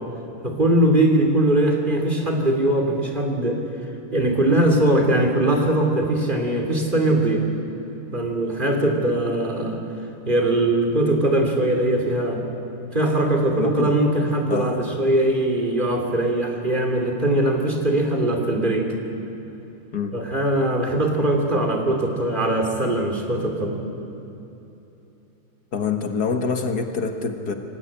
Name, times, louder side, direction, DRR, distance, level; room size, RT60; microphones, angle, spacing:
voice 1, 0.4-3.6 4.1-7.4 8.1-9.8 10.2-12.4 12.9-18.9 20.1-23.8, right 1 dB, 30° right, 1 dB, 3.2 m, -21 dB
voice 2, 13.6-14.0 14.5-14.8 19.9-20.1 25.7-27.5, left 5 dB, 80° left, 5 dB, 2.2 m, -26 dB
26.5 x 18.5 x 8.8 m, 2.9 s
omnidirectional pair, 1.7 m